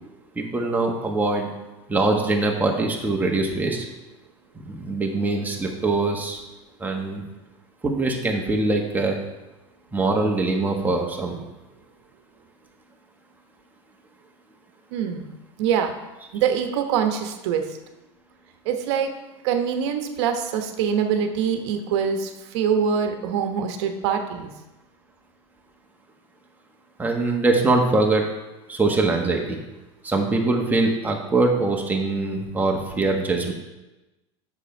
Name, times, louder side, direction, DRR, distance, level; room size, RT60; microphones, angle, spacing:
voice 1, 0.3-1.5 1.9-3.9 4.5-6.4 6.8-7.2 7.8-9.2 9.9-11.4 27.0-28.2 28.7-29.6 30.0-33.5, right 2 dB, 10° right, 1 dB, 1.4 m, -23 dB
voice 2, 14.9-15.3 15.6-15.9 16.3-17.7 18.6-19.1 19.4-24.5, right 7 dB, 75° right, 6 dB, 1.1 m, -24 dB
8.2 x 6.8 x 4.4 m, 1.0 s
supercardioid pair, 125°, 15 cm